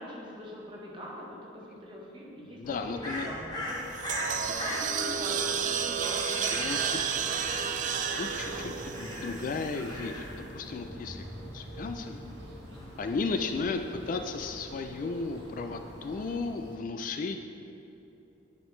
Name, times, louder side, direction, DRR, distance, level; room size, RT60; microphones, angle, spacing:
voice 1, 0.0-3.8 4.4-7.3 8.2-9.5, equal, 25° right, -3 dB, 1.1 m, -43 dB
voice 2, 2.4-3.3 6.5-7.0 8.1-11.2 11.5-12.2 13.0-17.4, left 4 dB, 45° left, 6 dB, 0.3 m, -34 dB
Crow, 2.6-16.4, left 1 dB, 20° left, 0.9 m, -41 dB
sound 1, 3.7-10.0, right 7 dB, 45° right, 0.3 m, -32 dB
sound 2, 6.6-16.8, right 1 dB, 65° right, 0.9 m, -49 dB
9.5 x 5.1 x 3.1 m, 2.8 s
head